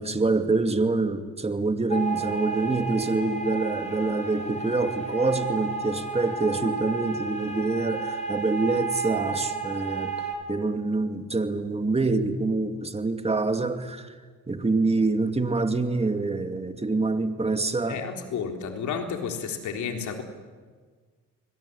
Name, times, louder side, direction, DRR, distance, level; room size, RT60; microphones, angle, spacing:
voice 1, 0.0-14.1 14.5-18.0, right 3 dB, 20° right, 7 dB, 2.4 m, -26 dB
sound 1, 1.9-10.3, right 5 dB, 20° left, 7.1 m, -32 dB
voice 2, 17.9-20.2, left 6 dB, 75° left, 4 dB, 3.8 m, -31 dB
29.5 x 22.5 x 8.5 m, 1.5 s
cardioid pair, 90°, 30 cm